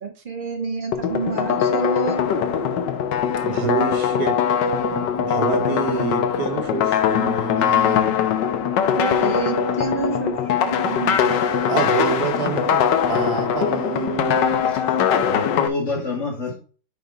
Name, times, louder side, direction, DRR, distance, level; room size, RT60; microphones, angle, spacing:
voice 1, 0.0-2.3 8.8-11.4, right 4 dB, 80° right, 0.4 m, -29 dB
sound 1, 0.9-15.7, left 8 dB, 75° left, 1.4 m, -21 dB
voice 2, 3.4-4.4 4.9-8.2 11.7-14.6, right 6 dB, 65° right, 1.4 m, -27 dB
voice 3, 14.3-16.6, left 3 dB, 40° left, 2.0 m, -29 dB
6.7 x 4.2 x 4.7 m
omnidirectional pair, 2.0 m